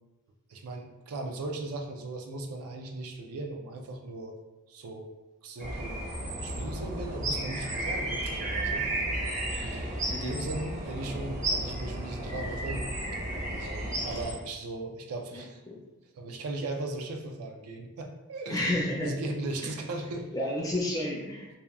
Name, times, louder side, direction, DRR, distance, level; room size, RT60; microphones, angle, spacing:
voice 1, 0.5-4.3 4.7-5.1 5.4-6.0 6.4-9.0 9.6-12.9 13.5-15.6 16.1-20.3, right 2 dB, 85° right, 3 dB, 0.4 m, -38 dB
sound 1, 5.6-14.3, right 1 dB, 35° right, 0.6 m, -33 dB
voice 2, 15.3-15.7 18.5-19.3 20.3-21.6, left 1 dB, 15° left, -2 dB, 0.4 m, -31 dB
2.8 x 2.2 x 2.2 m, 1.1 s
head